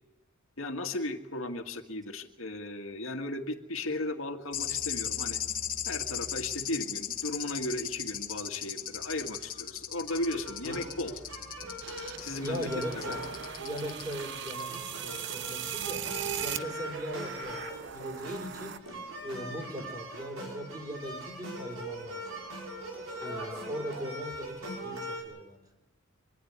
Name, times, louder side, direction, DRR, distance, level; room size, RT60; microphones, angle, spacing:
voice 1, 0.6-5.4 5.9-11.1 12.2-12.7 13.0-13.2, left 1 dB, 75° left, 4 dB, 2.1 m, -36 dB
sound 1, 4.5-14.2 14.5-14.7 16.1-16.2, left 10 dB, 45° left, 1.4 m, -37 dB
sound 2, 10.1-25.2, right 1 dB, 90° right, 5.8 m, -41 dB
sound 3, 11.8-18.8, right 9 dB, 60° right, 0.9 m, -40 dB
voice 2, 12.4-18.8 19.2-22.4 23.2-25.7, equal, 20° right, 2 dB, 4.9 m, -40 dB
26.0 x 12.5 x 9.7 m, 1.0 s
head